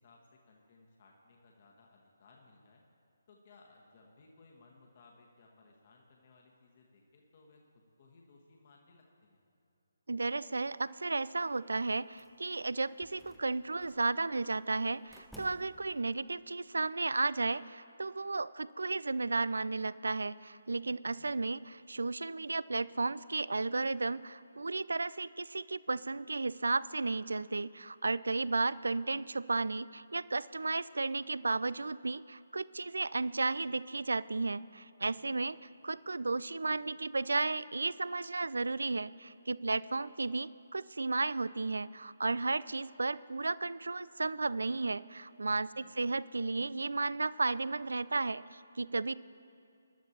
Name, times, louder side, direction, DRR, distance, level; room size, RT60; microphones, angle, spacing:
voice 1, 0.0-2.8 3.3-9.4 21.1-21.4 35.1-35.5 45.6-45.9, left 3 dB, 35° left, 0 dB, 1.4 m, -62 dB
voice 2, 10.1-21.6 21.9-35.6 35.8-49.1, right 3 dB, 65° right, 19 dB, 0.3 m, -34 dB
sound 1, 12.1-12.6 13.0-14.1 15.1-16.0, equal, ahead, 0.7 m, -55 dB
21.0 x 12.0 x 2.9 m, 2.5 s
figure-of-eight pair, 140°, 0 cm